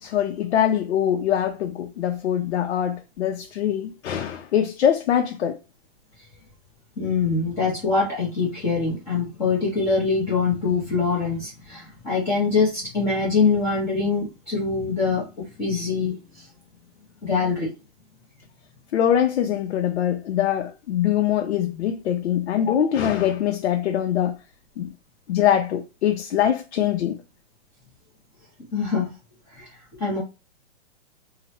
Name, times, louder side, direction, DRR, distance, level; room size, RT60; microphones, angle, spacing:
voice 1, 0.0-5.6 18.9-24.4 24.8-24.9 25.3-27.2, left 10 dB, 80° left, 0.5 m, -23 dB
voice 2, 7.0-16.5 17.2-17.7 28.7-29.1 29.5-30.2, left 4 dB, 10° left, 0.5 m, -24 dB
2.8 x 2.0 x 2.8 m
hypercardioid pair, 165°, 33 cm